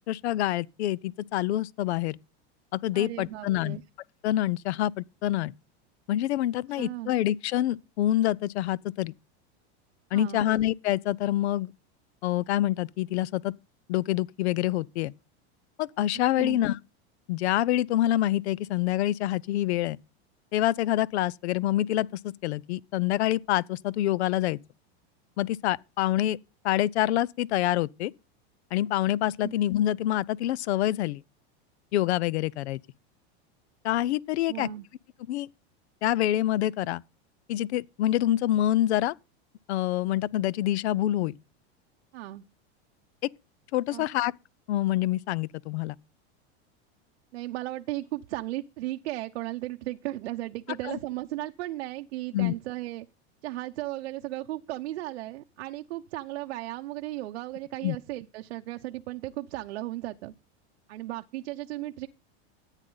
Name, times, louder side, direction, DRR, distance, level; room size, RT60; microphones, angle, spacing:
voice 1, 0.1-2.2 2.7-3.8 4.2-5.5 6.1-9.1 10.1-11.7 12.2-13.5 13.9-15.1 15.8-16.8 17.3-20.0 20.5-24.6 25.4-26.4 26.6-28.1 28.7-31.2 31.9-32.8 33.8-34.7 35.3-35.5 36.0-37.0 37.5-39.1 39.7-41.3 43.7-44.3 44.7-46.0 50.9-51.0 52.3-52.5 57.8-58.0, left 13 dB, 75° left, 0.7 m, -26 dB
voice 2, 2.9-3.8 6.8-7.1 10.1-10.5 16.4-16.6 29.4-29.5 34.5-34.9 42.1-42.4 43.9-44.1 47.3-53.1 53.4-60.3 60.9-62.1, right 16 dB, 85° right, 0.9 m, -35 dB
14.0 x 9.1 x 4.0 m
supercardioid pair, 175°, 33 cm